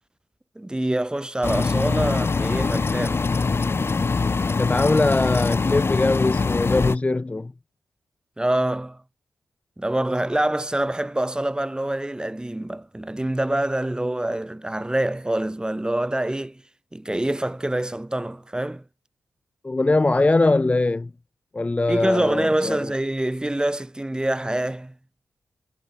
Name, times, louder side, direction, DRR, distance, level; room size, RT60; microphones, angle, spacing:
voice 1, 0.6-3.3 8.4-9.0 9.8-16.6 16.9-18.8 21.9-24.9, right 1 dB, 15° right, 2.4 m, -25 dB
sound 1, 1.4-7.0, left 4 dB, 45° left, 1.6 m, -23 dB
voice 2, 4.6-7.5 19.6-21.1 21.5-22.9, left 2 dB, 20° left, 0.4 m, -21 dB
cardioid pair, 55°, 6 cm